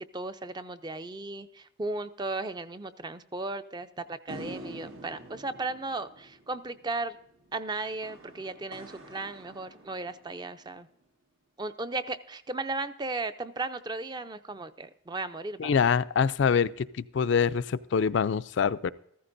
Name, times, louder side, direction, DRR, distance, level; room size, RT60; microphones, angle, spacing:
voice 1, 0.1-7.2 7.5-10.9 11.6-15.7, right 3 dB, 20° right, 11 dB, 0.4 m, -35 dB
sound 1, 4.3-10.8, right 1 dB, 85° right, 1.6 m, -46 dB
voice 2, 15.6-18.9, left 6 dB, 65° left, 13 dB, 0.4 m, -25 dB
14.5 x 14.0 x 2.6 m, 0.79 s
head